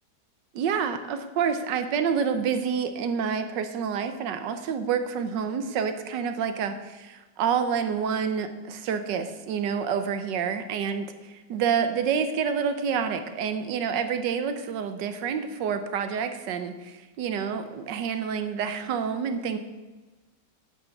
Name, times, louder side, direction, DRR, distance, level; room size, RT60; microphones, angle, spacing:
voice 1, 0.5-19.6, right 7 dB, 85° right, 9 dB, 1.5 m, -28 dB
9.0 x 6.1 x 5.9 m, 1.2 s
omnidirectional pair, 1.9 m